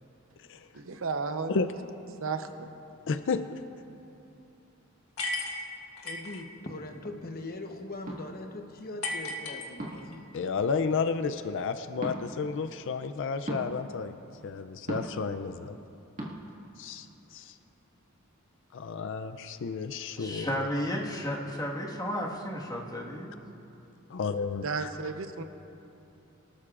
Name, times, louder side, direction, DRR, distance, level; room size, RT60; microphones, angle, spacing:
voice 1, 0.7-1.6 2.2-2.7 24.6-25.4, right 4 dB, 70° right, 8 dB, 0.8 m, -33 dB
voice 2, 3.1-3.6 10.3-14.1 14.4-15.8 16.8-17.5 18.7-20.7 24.1-24.9, left 5 dB, 60° left, 10 dB, 0.4 m, -32 dB
sound 1, 5.2-6.4 9.0-10.2, left 2 dB, 90° left, 1.4 m, -34 dB
voice 3, 6.0-10.3, left 2 dB, 45° left, 4 dB, 1.0 m, -41 dB
sound 2, 8.1-8.2 9.8-10.1 12.0-12.2 13.5-13.7 14.9-15.2 16.2-16.3, right 1 dB, 40° right, 1.8 m, -35 dB
voice 4, 20.2-23.3, equal, 20° left, -2 dB, 1.6 m, -33 dB
24.0 x 13.0 x 2.5 m, 2.8 s
head